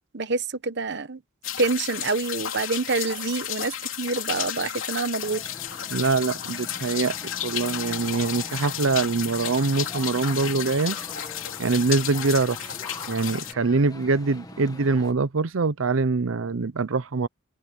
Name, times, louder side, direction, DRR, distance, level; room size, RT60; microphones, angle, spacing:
voice 1, 0.1-1.2 1.6-5.4, right 3 dB, 55° right, 1.1 m, -27 dB
sound 1, 1.4-13.5, left 11 dB, 80° left, 2.9 m, -33 dB
sound 2, 5.2-15.1, left 2 dB, 20° left, 1.2 m, -43 dB
voice 2, 5.9-7.2 7.4-11.0 11.6-12.7 13.1-17.3, right 4 dB, 75° right, 0.7 m, -24 dB
head